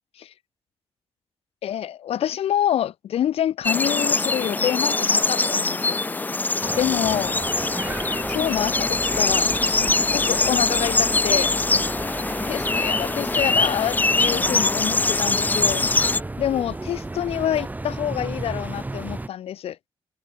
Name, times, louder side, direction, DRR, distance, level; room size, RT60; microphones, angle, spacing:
voice 1, 1.6-6.0 6.8-7.4 8.3-11.5 12.4-15.9 16.4-19.8, left 10 dB, 80° left, 1.4 m, -27 dB
sound 1, 3.6-16.2, left 3 dB, 20° left, 0.5 m, -23 dB
sound 2, 6.6-19.3, right 2 dB, 15° right, 2.4 m, -33 dB
open air
cardioid pair, 95°, 10 cm